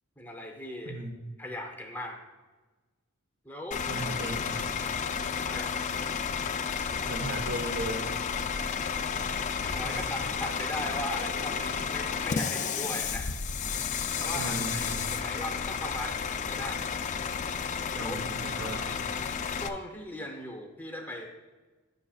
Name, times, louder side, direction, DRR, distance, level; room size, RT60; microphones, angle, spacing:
voice 1, 0.2-1.0 1.4-2.2 3.4-3.8 5.5-5.8 8.7-9.1 9.6-13.3 14.2-16.9 17.9-18.2 18.6-19.3 19.6-21.3, left 1 dB, 10° left, 1 dB, 0.7 m, -39 dB
Bus / Idling, 3.7-19.7, left 6 dB, 35° left, 0.3 m, -32 dB
voice 2, 3.8-4.7 7.0-8.0 9.8-10.0 14.3-15.0 17.9-18.8, right 1 dB, 60° right, 5 dB, 0.9 m, -36 dB
10.0 x 6.4 x 2.3 m, 1.3 s
head